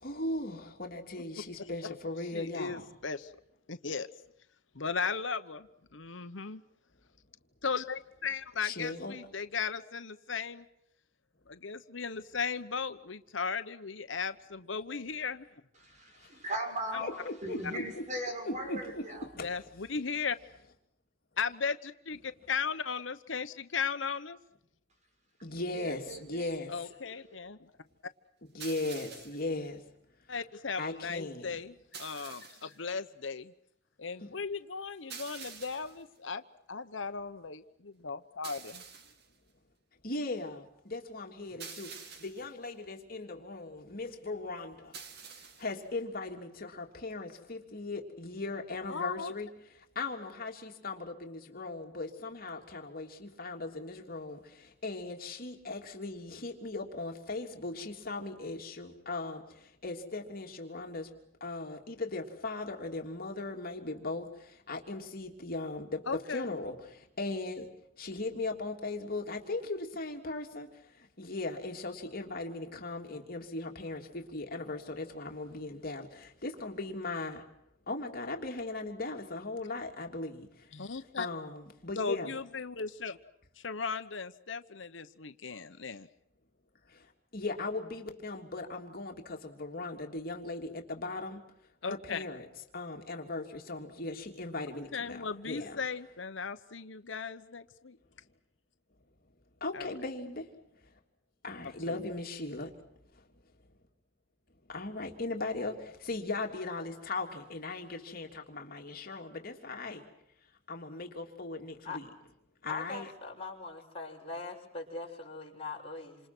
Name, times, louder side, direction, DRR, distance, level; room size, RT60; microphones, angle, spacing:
voice 1, 0.0-2.9 8.6-9.2 17.0-18.1 18.4-19.5 25.4-26.7 28.5-29.8 30.8-31.6 32.3-32.4 34.2-34.3 40.0-45.0 45.6-49.5 49.9-61.1 61.4-67.7 68.0-70.7 71.2-77.4 77.9-80.5 81.2-82.3 87.3-91.4 91.8-92.5 92.7-95.8 99.6-100.5 101.4-102.7 104.7-110.0 110.7-112.1 112.6-113.1, left 2 dB, 50° left, 3.3 m, -38 dB
voice 2, 2.3-3.3 3.7-4.1 4.7-6.6 7.6-10.7 11.5-15.5 16.9-17.0 19.4-20.4 21.4-24.4 26.7-27.7 30.3-33.5 34.0-36.4 36.7-38.8 48.9-49.3 66.1-66.5 80.7-81.3 81.9-83.2 83.6-86.1 91.8-92.2 94.7-98.0 99.7-99.9 101.9-102.0, left 5 dB, 80° left, 1.1 m, -36 dB
voice 3, 15.8-19.2 25.7-26.5, right 1 dB, 40° right, 6.7 m, -38 dB
sound 1, 28.6-29.5 31.9-32.8 35.1-36.0 38.4-39.3 41.6-42.5 44.9-45.8, right 6 dB, 60° right, 2.5 m, -47 dB
voice 4, 112.7-116.2, left 3 dB, 30° left, 6.3 m, -41 dB
28.5 x 27.0 x 6.2 m
head